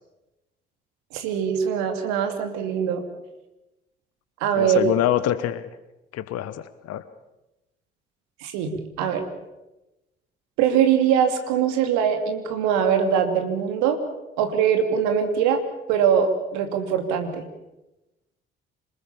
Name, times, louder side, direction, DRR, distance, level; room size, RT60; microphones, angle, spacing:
voice 1, 1.1-3.0 4.4-4.8 8.4-9.2 10.6-14.0 14.4-15.6 15.9-17.4, right 8 dB, 65° right, 6 dB, 2.8 m, -22 dB
voice 2, 4.5-5.7 6.1-7.0, left 12 dB, 55° left, 14 dB, 1.2 m, -25 dB
26.5 x 20.0 x 7.1 m, 1.0 s
figure-of-eight pair, 45°, 30 cm